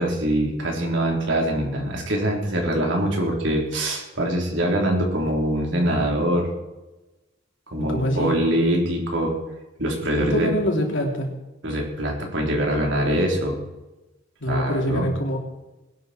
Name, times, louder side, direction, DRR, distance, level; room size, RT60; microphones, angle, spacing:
voice 1, 0.0-6.5 7.7-9.4 9.8-10.5 11.6-13.6 14.5-15.1, right 1 dB, 65° right, 0 dB, 4.0 m, -23 dB
voice 2, 7.9-8.4 10.2-11.3 14.4-15.4, equal, 70° left, 0 dB, 3.6 m, -24 dB
21.0 x 11.5 x 4.6 m, 1.0 s
head